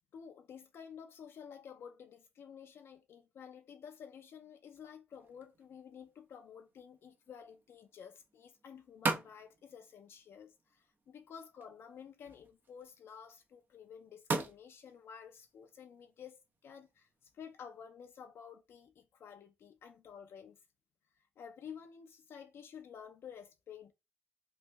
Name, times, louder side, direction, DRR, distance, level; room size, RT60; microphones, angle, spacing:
voice 1, 0.1-20.6 21.2-23.9, left 7 dB, 75° left, 0.4 m, -52 dB
sound 1, 5.1-17.9, right 3 dB, 50° right, 0.8 m, -44 dB
3.0 x 2.6 x 3.3 m
cardioid pair, 70°, 4 cm